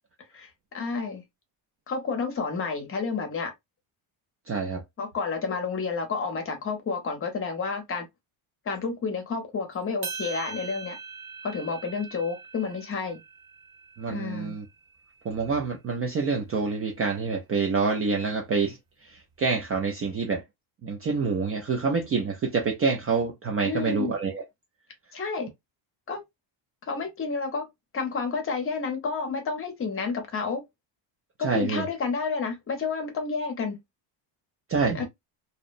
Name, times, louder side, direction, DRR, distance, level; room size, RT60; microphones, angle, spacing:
voice 1, 0.3-1.2 1.9-3.5 5.0-8.1 8.7-11.0 11.4-13.2 14.1-14.6 23.6-24.1 25.1-25.5 26.1-26.2 26.9-27.7 27.9-30.6 31.4-33.8 34.9-35.0, left 4 dB, 25° left, 0.7 m, -30 dB
voice 2, 4.5-4.8 14.0-14.6 15.2-18.8 19.1-20.4 20.8-24.4 31.4-31.9 34.7-35.0, right 4 dB, 30° right, 0.3 m, -27 dB
sound 1, 10.0-14.4, right 5 dB, 50° right, 0.9 m, -41 dB
2.7 x 2.0 x 2.4 m
cardioid pair, 145°, 49 cm